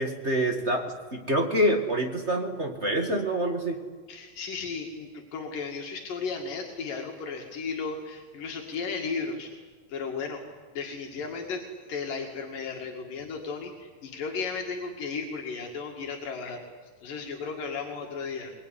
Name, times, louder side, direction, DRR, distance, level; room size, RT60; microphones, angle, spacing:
voice 1, 0.0-3.8, right 1 dB, 25° right, 4 dB, 1.5 m, -26 dB
voice 2, 4.1-9.5 9.9-10.4 10.7-11.6 11.9-16.7 17.0-18.5, left 5 dB, 80° left, 1 dB, 3.8 m, -35 dB
23.5 x 22.5 x 9.9 m, 1.5 s
omnidirectional pair, 3.8 m